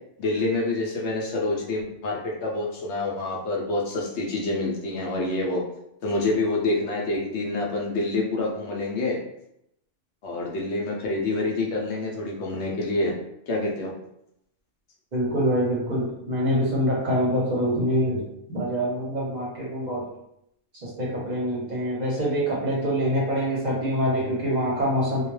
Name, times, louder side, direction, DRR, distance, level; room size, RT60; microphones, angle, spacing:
voice 1, 0.2-5.6 6.0-9.2 10.2-13.1 13.5-13.9, left 2 dB, 70° left, -2 dB, 0.8 m, -27 dB
voice 2, 15.1-18.2 18.5-20.0 20.8-25.3, equal, 45° right, -6 dB, 0.7 m, -25 dB
2.3 x 2.2 x 3.0 m, 0.79 s
omnidirectional pair, 1.3 m